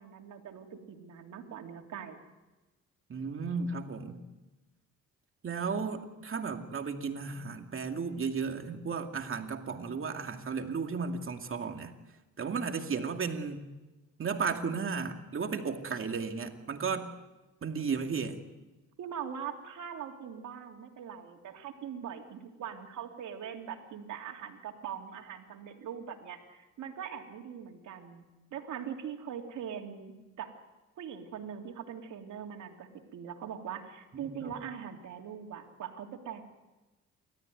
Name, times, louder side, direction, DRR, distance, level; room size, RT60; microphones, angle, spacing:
voice 1, 0.0-2.2 19.0-28.2 28.5-30.5 31.0-36.4, right 8 dB, 75° right, 3 dB, 3.1 m, -42 dB
voice 2, 3.1-4.2 5.4-11.9 12.4-13.7 14.2-17.1 17.6-18.4 34.1-34.5, right 5 dB, 45° right, 5 dB, 2.4 m, -34 dB
29.0 x 14.0 x 9.3 m, 1.1 s
cardioid pair, 90°, 30 cm